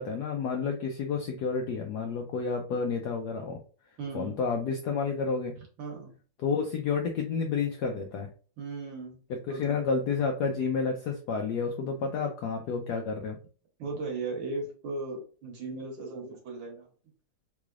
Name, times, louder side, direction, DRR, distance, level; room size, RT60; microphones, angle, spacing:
voice 1, 0.0-3.6 4.1-5.6 6.4-8.3 9.3-13.4, left 5 dB, 85° left, 3 dB, 0.9 m, -30 dB
voice 2, 4.0-4.4 5.8-6.1 8.6-9.2 9.5-9.8 13.8-16.9, right 3 dB, 65° right, 1 dB, 1.6 m, -37 dB
3.8 x 3.2 x 2.4 m, 0.39 s
omnidirectional pair, 2.3 m